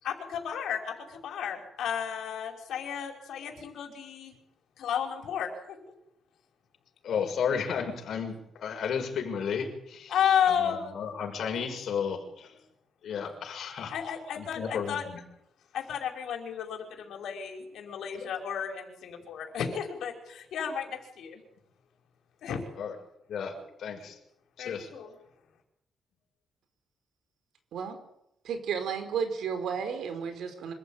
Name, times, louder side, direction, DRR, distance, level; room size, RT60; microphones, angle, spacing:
voice 1, 0.0-4.3 4.8-5.8 10.1-10.9 13.9-15.0 15.7-21.4 22.4-22.6 24.6-25.1, left 8 dB, 85° left, 3 dB, 5.6 m, -32 dB
voice 2, 7.0-10.1 10.5-12.6 13.0-13.9 14.3-15.2 22.8-22.9 23.3-24.2 24.6-24.9, left 7 dB, 70° left, 3 dB, 6.3 m, -33 dB
voice 3, 28.4-30.7, right 7 dB, 85° right, 8 dB, 4.7 m, -32 dB
26.0 x 15.5 x 9.2 m, 0.79 s
cardioid pair, 135°, 0 cm